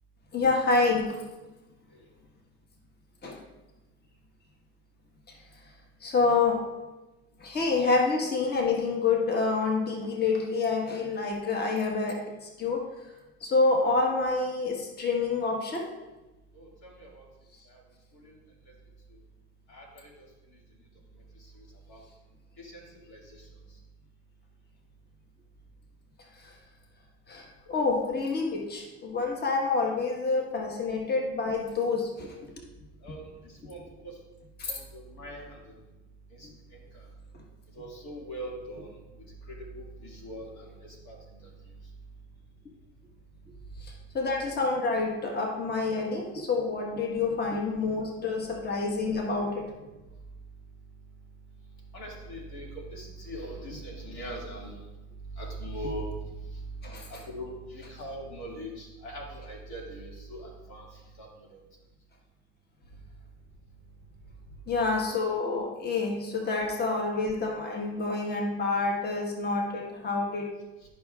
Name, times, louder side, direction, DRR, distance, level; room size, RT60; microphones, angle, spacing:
voice 1, 0.3-1.2 3.2-3.4 6.0-6.6 7.4-12.8 13.4-15.9 26.4-26.5 27.3-32.6 34.6-34.8 43.8-49.7 56.8-57.1 64.7-70.5, left 3 dB, 30° left, 1 dB, 1.3 m, -28 dB
voice 2, 16.5-17.2 18.2-18.3 19.7-20.1 21.9-22.0 22.6-22.8 23.1-23.4 33.0-34.1 34.7-35.6 36.4-36.5 37.8-38.9 39.5-41.2 47.5-47.6 51.9-54.8 55.4-56.1 57.1-60.8 61.2-61.3, right 1 dB, 65° left, -1 dB, 2.1 m, -41 dB
11.0 x 5.7 x 2.4 m, 1.1 s
supercardioid pair, 100°, 31 cm